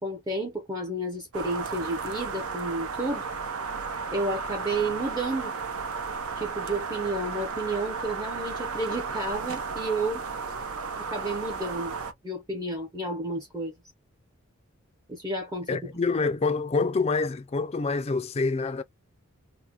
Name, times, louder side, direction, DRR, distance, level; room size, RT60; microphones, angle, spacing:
voice 1, 0.0-3.3 4.1-5.5 6.4-10.2 11.0-11.9 12.2-13.7 15.1-15.8, right 2 dB, 15° right, 0.6 m, -31 dB
sound 1, 1.3-12.1, right 5 dB, 80° right, 0.8 m, -34 dB
voice 2, 15.7-18.8, left 4 dB, 30° left, 0.3 m, -26 dB
3.6 x 2.1 x 2.8 m
head